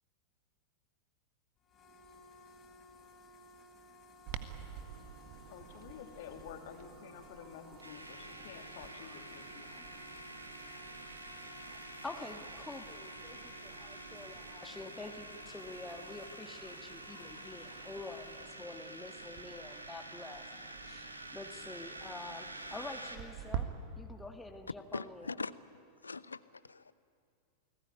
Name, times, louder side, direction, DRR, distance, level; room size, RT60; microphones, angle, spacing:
sound 1, 1.6-18.4, left 1 dB, 25° left, 4.2 m, -57 dB
Clock, 4.3-23.6, right 10 dB, 45° right, 1.7 m, -50 dB
voice 1, 5.5-10.0 11.0-11.1, left 9 dB, 55° left, 6 dB, 2.6 m, -51 dB
sound 2, 7.8-23.2, right 1 dB, 85° right, 2.2 m, -48 dB
voice 2, 12.0-20.4 20.8-25.3, left 3 dB, 10° left, 5 dB, 1.7 m, -47 dB
voice 3, 24.9-26.9, left 4 dB, 75° left, 18 dB, 0.7 m, -42 dB
28.5 x 20.0 x 10.0 m, 2.4 s
figure-of-eight pair, 90°, 0 cm